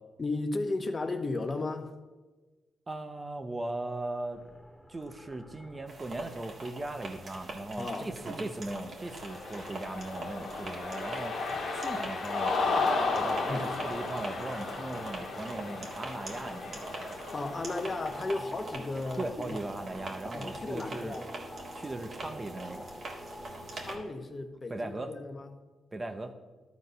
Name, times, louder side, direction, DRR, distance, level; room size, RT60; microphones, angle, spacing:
voice 1, 0.2-2.0 7.8-8.1 13.5-13.7 16.9-19.5 20.3-21.3 23.7-25.5, left 2 dB, 35° left, 7 dB, 1.0 m, -35 dB
voice 2, 2.9-4.4 4.9-11.3 11.7-12.6 13.1-16.9 19.2-21.2 21.7-22.9 24.7-25.1 25.9-26.3, right 2 dB, 30° right, 7 dB, 0.8 m, -38 dB
sound 1, 4.3-24.0, left 1 dB, 10° left, 1.3 m, -49 dB
sound 2, 5.9-23.9, right 2 dB, 55° right, 1.8 m, -44 dB
Cheering, 9.1-18.3, left 3 dB, 65° left, 1.6 m, -34 dB
12.0 x 4.1 x 5.4 m, 1.2 s
cardioid pair, 65°, 0 cm